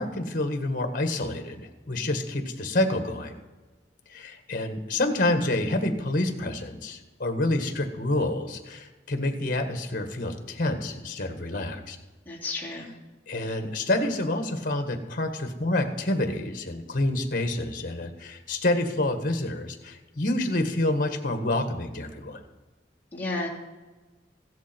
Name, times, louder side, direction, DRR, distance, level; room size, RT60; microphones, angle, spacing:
voice 1, 0.0-3.3 4.1-12.0 13.3-22.4, left 1 dB, 50° left, 7 dB, 1.7 m, -28 dB
voice 2, 12.2-12.9 23.1-23.5, left 2 dB, 10° left, -6 dB, 3.2 m, -32 dB
15.5 x 13.0 x 4.6 m, 1.2 s
head